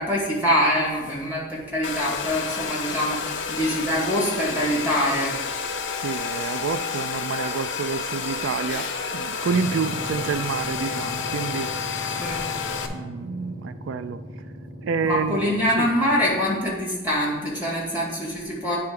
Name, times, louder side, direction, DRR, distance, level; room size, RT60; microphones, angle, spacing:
voice 1, 0.0-5.4 12.2-12.4 15.0-18.8, equal, 10° right, 2.2 m, -24 dB
Domestic sounds home sounds, 1.8-12.9, left 5 dB, 75° left, 0.7 m, -30 dB
voice 2, 6.0-11.7 12.9-14.2 14.8-15.9, right 5 dB, 80° right, 0.3 m, -28 dB
sound 1, 9.4-16.6, equal, 60° right, 2.5 m, -39 dB
9.3 x 3.4 x 5.2 m
head